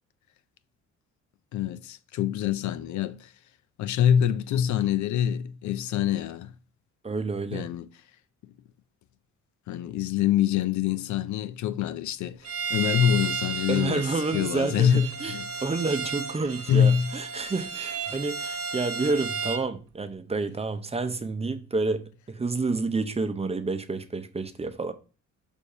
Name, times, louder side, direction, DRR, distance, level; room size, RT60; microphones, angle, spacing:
voice 1, 1.5-3.3 3.8-6.5 7.5-7.9 9.7-14.0 14.3-15.5 16.7-17.1, left 9 dB, 70° left, 0.5 m, -25 dB
voice 2, 7.0-7.7 13.7-24.9, right 3 dB, 20° right, 0.7 m, -29 dB
Bowed string instrument, 12.4-19.7, right 5 dB, 50° right, 1.1 m, -33 dB
6.5 x 2.7 x 5.5 m
cardioid pair, 90°, 30 cm